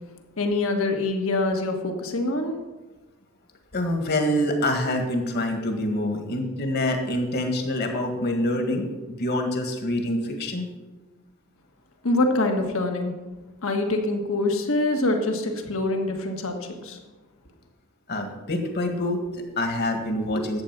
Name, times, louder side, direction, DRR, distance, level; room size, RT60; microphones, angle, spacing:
voice 1, 0.4-2.6 12.0-13.1 13.6-16.6 16.8-17.0, left 2 dB, 70° left, 4 dB, 1.5 m, -25 dB
voice 2, 3.7-10.7 18.1-20.6, left 1 dB, 50° left, 4 dB, 1.8 m, -26 dB
11.5 x 8.3 x 6.0 m, 1.2 s
head